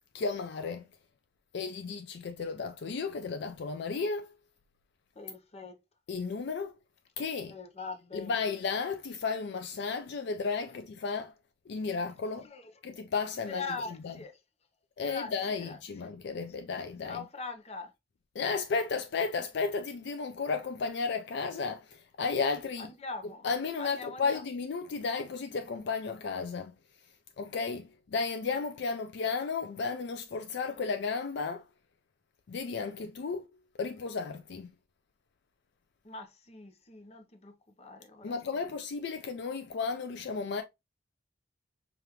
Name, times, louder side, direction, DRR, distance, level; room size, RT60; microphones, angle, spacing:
voice 1, 0.1-0.8 1.5-4.3 6.1-6.7 7.2-7.5 8.1-11.3 11.7-12.5 12.8-13.6 14.0-14.1 15.0-17.2 18.4-22.9 23.4-26.7 27.4-31.6 32.5-33.5 33.8-34.7 38.2-40.6, left 4 dB, 65° left, 0.4 m, -33 dB
voice 2, 5.2-5.8 7.5-8.4 12.4-12.7 13.5-14.4 15.0-15.8 17.0-17.9 22.8-23.5 23.8-24.4 36.0-38.7, left 4 dB, 35° left, 0.7 m, -42 dB
4.9 x 2.5 x 2.9 m
head